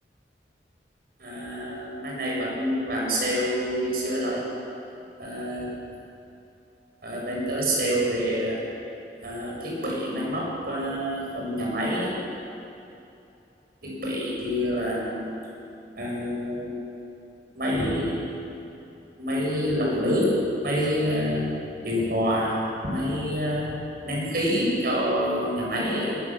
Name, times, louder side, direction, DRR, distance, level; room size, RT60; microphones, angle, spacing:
voice 1, 1.2-4.4 5.2-5.7 7.0-8.6 9.2-12.2 13.8-15.3 16.0-16.7 17.6-18.3 19.2-20.4 20.6-21.5 21.8-22.6 22.8-23.8 24.0-26.2, equal, 55° right, -3 dB, 7.3 m, -27 dB
22.5 x 19.0 x 7.5 m, 2.8 s
head